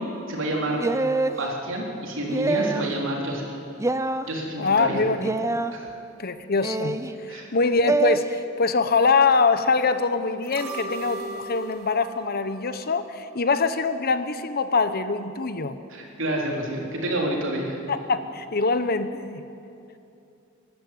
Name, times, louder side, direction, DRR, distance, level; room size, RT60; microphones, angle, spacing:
voice 1, 0.3-0.8 1.4-3.6 4.3-5.1 5.7-5.9 7.3-7.5 15.9-17.8, right 1 dB, 65° right, -1 dB, 3.9 m, -28 dB
sound 1, 0.8-1.4 2.3-2.9 3.8-4.2 5.2-5.7 6.6-7.1 7.9-8.2, right 3 dB, 15° right, 0.6 m, -25 dB
voice 2, 4.6-5.6 6.2-15.8 17.9-19.4, left 4 dB, 45° left, 11 dB, 1.0 m, -24 dB
sound 2, 10.4-13.6 13.9-14.0, right 3 dB, 85° right, 3.3 m, -38 dB
25.5 x 13.0 x 9.2 m, 2.7 s
head